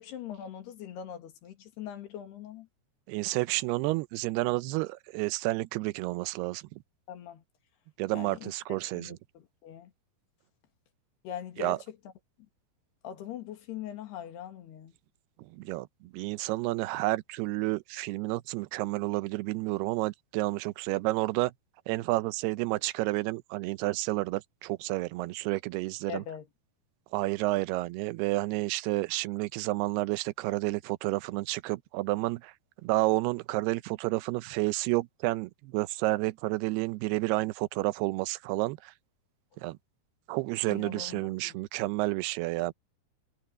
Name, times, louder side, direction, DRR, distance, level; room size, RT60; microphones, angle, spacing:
voice 1, 0.0-2.7 7.1-7.4 8.1-9.9 11.2-11.8 13.0-14.9 26.1-26.5 40.7-41.6, left 9 dB, 85° left, 4.2 m, -42 dB
voice 2, 3.1-6.8 8.0-9.2 11.6-11.8 15.4-21.5 21.9-26.2 27.1-32.5 32.8-38.9 39.6-39.8 40.3-42.7, right 20 dB, 85° right, 2.6 m, -30 dB
omnidirectional pair, 4.6 m